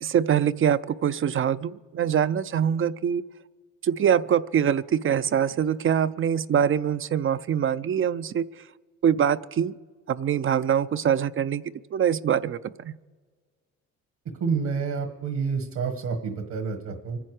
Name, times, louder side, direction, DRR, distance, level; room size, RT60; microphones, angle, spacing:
voice 1, 0.0-3.2 3.8-8.5 9.0-9.7 10.1-11.6 11.9-12.9, right 8 dB, 45° right, 15 dB, 0.5 m, -24 dB
voice 2, 14.4-17.2, right 5 dB, 65° right, 5 dB, 1.6 m, -28 dB
25.0 x 10.0 x 4.8 m, 1.4 s
cardioid pair, 90°, 30 cm